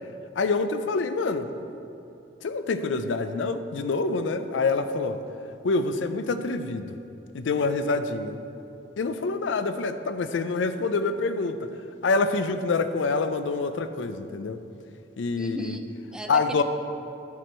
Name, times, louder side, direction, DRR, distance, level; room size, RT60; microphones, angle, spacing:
voice 1, 0.4-1.5 2.4-5.2 5.6-7.0 7.3-8.4 9.0-11.7 12.0-14.6 15.2-15.8 16.3-16.6, left 3 dB, 90° left, 10 dB, 0.4 m, -26 dB
voice 2, 15.4-16.6, right 1 dB, 5° right, 5 dB, 0.4 m, -37 dB
9.4 x 6.1 x 4.3 m, 2.9 s
head